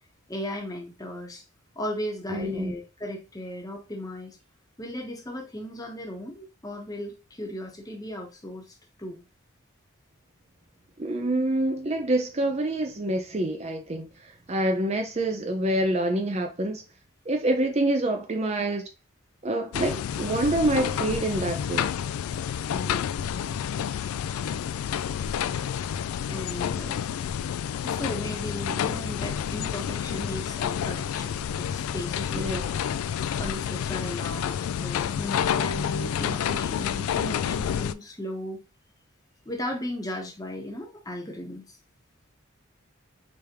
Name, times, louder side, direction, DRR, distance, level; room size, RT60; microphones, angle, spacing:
voice 1, 0.3-1.4 1.8-4.4 4.8-9.2 22.7-23.5 26.3-27.0 27.8-32.7 33.4-38.6 39.5-41.8, left 1 dB, 15° left, 0.9 m, -36 dB
voice 2, 2.3-2.7 11.0-14.1 14.5-16.8 17.3-18.9 19.4-21.9 32.4-32.8, right 1 dB, 30° right, 0.5 m, -26 dB
sound 1, 19.7-37.9, left 8 dB, 90° left, 0.3 m, -29 dB
5.1 x 3.4 x 2.9 m
head